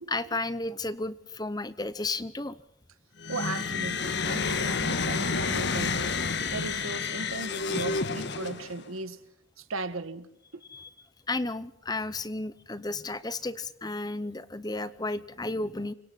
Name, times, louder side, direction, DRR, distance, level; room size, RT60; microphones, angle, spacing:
voice 1, 0.1-2.6 10.7-10.9 11.3-15.9, left 2 dB, 20° left, 0.8 m, -33 dB
sound 1, 3.2-8.9, left 4 dB, 55° left, 1.6 m, -30 dB
voice 2, 3.3-6.1 6.5-9.2 9.6-10.6, right 3 dB, 80° right, 1.7 m, -37 dB
29.0 x 25.5 x 4.2 m
head